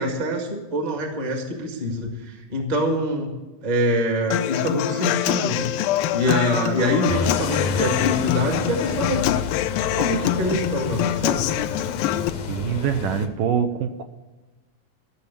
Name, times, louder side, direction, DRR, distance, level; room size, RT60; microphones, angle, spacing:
voice 1, 0.0-3.4 3.6-5.7 6.1-9.3 10.0-11.5, equal, 20° right, 2 dB, 1.0 m, -25 dB
Human voice / Acoustic guitar, 4.3-12.3, left 12 dB, 85° left, 2.4 m, -25 dB
sound 1, 7.1-13.3, left 6 dB, 70° left, 1.7 m, -30 dB
voice 2, 12.5-14.0, right 8 dB, 75° right, 7 dB, 2.2 m, -24 dB
14.0 x 6.8 x 8.4 m, 1.1 s
omnidirectional pair, 4.2 m